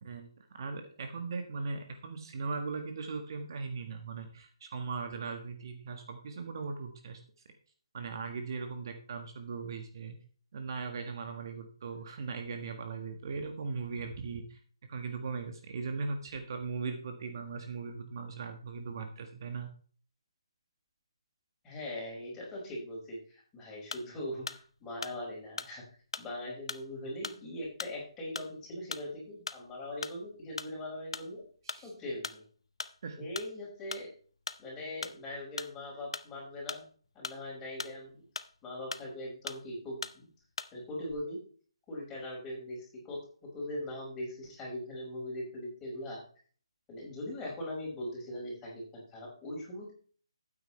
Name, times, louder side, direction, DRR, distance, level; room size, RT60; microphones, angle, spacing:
voice 1, 0.0-7.2 7.9-10.1 10.5-14.6 14.9-19.7 31.6-31.9 33.0-33.2, right 4 dB, 45° right, 5 dB, 1.6 m, -39 dB
voice 2, 21.6-25.8 26.2-31.4 31.8-32.4 33.2-34.1 34.6-36.9 37.1-38.2 38.6-40.3 40.7-41.4 41.9-43.2 43.5-46.2 46.9-49.9, left 1 dB, 10° left, -4 dB, 5.7 m, -40 dB
sound 1, 23.9-24.2 24.5-24.7 25.0-25.7 26.1-26.4 26.7-26.9 27.2-27.4 27.8-28.0 28.4-28.6 28.9-29.1 29.5-29.7 30.0-30.3 30.6-30.8 31.1-31.3 31.7-31.9 32.2-32.4 32.8-33.0 33.4-33.5 33.9-34.1 34.5-34.6 35.0-35.2 35.6-35.7 36.1-36.3 36.7-37.4 37.8-38.0 38.4-38.5 38.9-39.2 39.5-39.7 40.0-40.2 40.6-40.8 41.0-41.1, left 4 dB, 70° left, 0.8 m, -40 dB
12.5 x 9.2 x 3.3 m, 0.44 s
hypercardioid pair, 160°, 3 cm